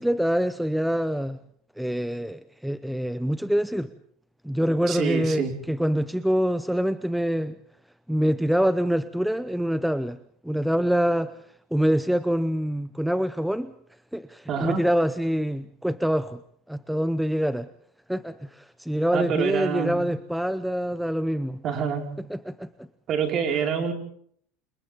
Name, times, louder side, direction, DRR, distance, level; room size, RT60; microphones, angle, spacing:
voice 1, 0.0-1.4 1.8-3.9 4.4-7.6 8.1-11.3 11.7-13.7 14.1-16.4 16.7-17.7 18.1-21.6 22.3-22.9, equal, ahead, 13 dB, 0.8 m, -25 dB
voice 2, 4.9-5.5 14.5-14.8 19.1-20.0 21.6-22.1 23.1-23.9, right 7 dB, 40° right, 4 dB, 5.0 m, -26 dB
29.5 x 27.5 x 3.7 m, 0.63 s
supercardioid pair, 135°, 0 cm